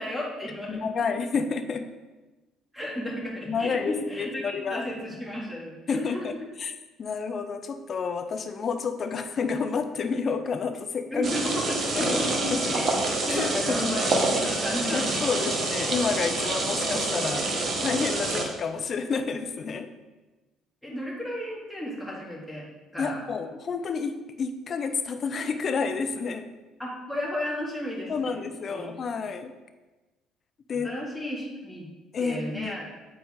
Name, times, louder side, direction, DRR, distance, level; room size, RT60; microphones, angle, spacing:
voice 1, 0.0-1.1 2.7-6.2 11.1-12.9 13.2-15.2 20.8-22.7 22.9-23.2 26.8-28.4 28.7-28.9 30.8-31.9 32.2-32.9, equal, 5° left, -4 dB, 2.3 m, -33 dB
voice 2, 0.7-1.9 3.5-4.8 5.9-6.3 6.6-6.7 7.0-11.3 12.0-12.2 12.5-12.7 13.3-13.8 14.9-17.5 17.8-19.9 23.0-26.5 28.1-29.5 30.7-30.9 32.1-32.7, left 5 dB, 45° left, 8 dB, 0.6 m, -30 dB
sound 1, 11.2-18.4, right 2 dB, 45° right, 1.2 m, -27 dB
8.0 x 4.3 x 3.7 m, 1.2 s
hypercardioid pair, 55°, 0 cm